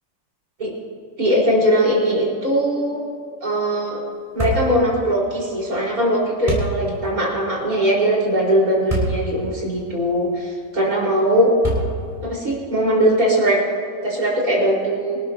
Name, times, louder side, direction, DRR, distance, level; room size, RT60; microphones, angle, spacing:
voice 1, 1.2-3.0 3.4-4.0 4.3-11.5 12.2-13.6 14.0-15.2, equal, 55° right, -4 dB, 4.9 m, -20 dB
sound 1, 4.4-4.7 6.5-6.7 8.9-9.2 9.8-9.9 11.6-12.1, right 2 dB, 20° right, 4.6 m, -23 dB
25.0 x 13.0 x 2.8 m, 2.4 s
omnidirectional pair, 1.9 m